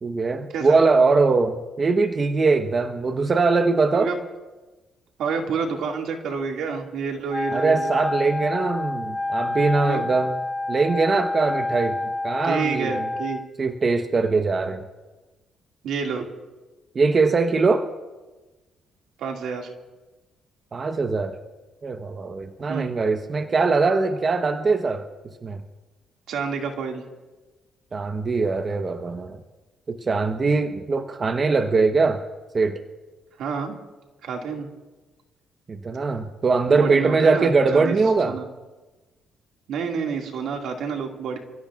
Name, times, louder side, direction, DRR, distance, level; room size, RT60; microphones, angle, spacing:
voice 1, 0.0-4.1 7.5-10.4 10.7-12.0 12.2-13.1 13.6-14.9 16.9-17.9 20.7-21.4 21.8-25.1 25.4-25.6 27.9-29.4 29.9-32.2 32.5-32.8 35.8-38.4, right 4 dB, 40° right, 6 dB, 1.0 m, -21 dB
voice 2, 5.2-8.0 9.9-10.1 12.4-13.4 15.8-16.3 19.2-19.7 22.7-23.0 26.3-27.0 33.4-33.8 34.2-34.7 36.7-38.0 38.3-38.5 39.7-41.4, right 5 dB, 80° right, 2 dB, 2.1 m, -28 dB
Wind instrument woodwind instrument, 7.3-13.5, left 2 dB, 15° left, 1.7 m, -28 dB
29.0 x 16.0 x 2.5 m, 1.2 s
cardioid pair, 90°, 0 cm